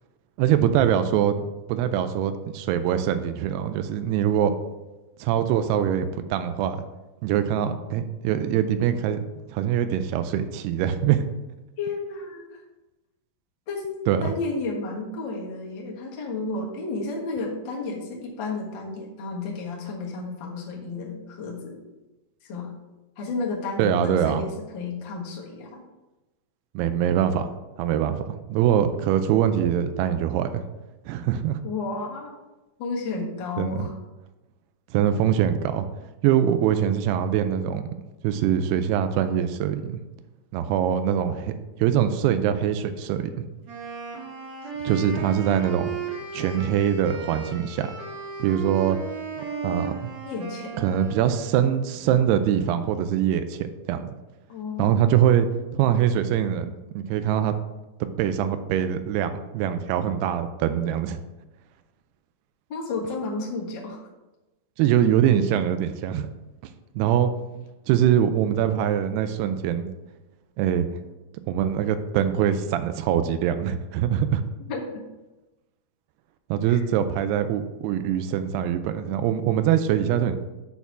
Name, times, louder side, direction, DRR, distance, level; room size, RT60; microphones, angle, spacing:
voice 1, 0.4-1.4 1.7-4.5 5.2-6.8 7.2-11.2 14.1-14.3 23.8-24.4 26.8-30.6 31.1-31.6 33.6-33.9 34.9-35.9 36.2-37.8 38.2-40.0 40.5-41.5 41.8-43.5 44.8-45.9 46.3-48.0 48.4-49.0 49.6-49.9 50.8-54.1 54.8-55.5 55.7-57.5 58.2-61.2 64.8-66.3 67.0-67.3 67.9-69.9 70.6-70.9 71.5-74.4 76.5-80.4, right 9 dB, 85° right, 9 dB, 2.6 m, -23 dB
voice 2, 11.8-12.6 13.7-21.8 22.4-22.7 23.2-25.8 31.6-32.3 32.8-33.9 50.2-50.8 54.5-55.0 62.7-64.0 74.7-74.8 76.6-76.8, left 3 dB, 80° left, -3 dB, 1.0 m, -32 dB
Wind instrument woodwind instrument, 43.7-51.8, right 5 dB, 55° right, 2.2 m, -35 dB
6.8 x 4.3 x 5.9 m, 1.1 s
omnidirectional pair, 4.6 m